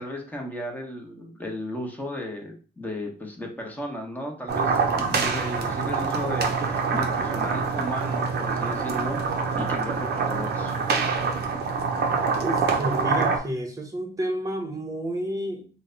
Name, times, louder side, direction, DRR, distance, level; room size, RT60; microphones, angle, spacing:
voice 1, 0.0-10.8, left 1 dB, 10° left, 0 dB, 1.0 m, -35 dB
sound 1, 4.5-13.4, right 5 dB, 55° right, 0.7 m, -25 dB
voice 2, 12.4-15.7, right 1 dB, 15° right, 2 dB, 0.9 m, -30 dB
3.1 x 2.2 x 3.9 m, 0.39 s
cardioid pair, 90°, 20 cm